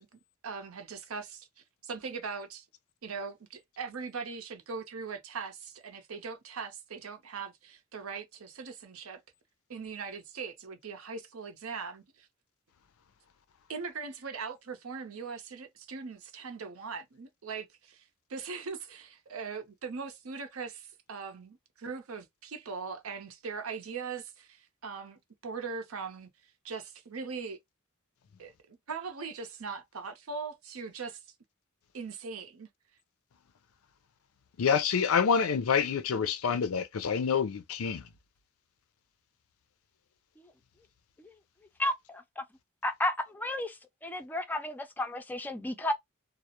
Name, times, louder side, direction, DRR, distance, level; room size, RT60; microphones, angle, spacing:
voice 1, 0.0-2.7 3.0-9.2 9.7-12.3 13.7-18.0 18.3-26.3 26.6-27.6 28.4-31.2 31.9-32.7, right 5 dB, 90° right, 0.6 m, -40 dB
voice 2, 34.6-38.0, left 6 dB, 90° left, 0.4 m, -27 dB
voice 3, 41.8-42.4 42.8-43.8 44.0-45.9, left 1 dB, 10° left, 0.3 m, -32 dB
2.3 x 2.0 x 2.8 m
head